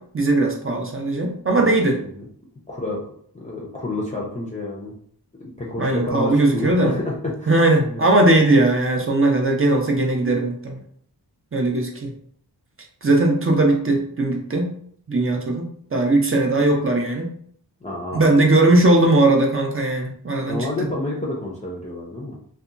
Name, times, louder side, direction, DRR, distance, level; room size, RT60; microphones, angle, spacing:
voice 1, 0.1-2.0 5.8-6.9 7.5-10.8 11.5-12.1 13.0-14.7 15.1-17.3 18.1-20.6, right 2 dB, 30° right, 2 dB, 0.6 m, -19 dB
voice 2, 1.6-2.2 2.7-3.0 3.3-4.9 5.4-8.0 17.8-18.5 20.5-22.3, left 2 dB, 15° left, -4 dB, 0.5 m, -29 dB
2.7 x 2.2 x 2.5 m, 0.62 s
cardioid pair, 60°, 41 cm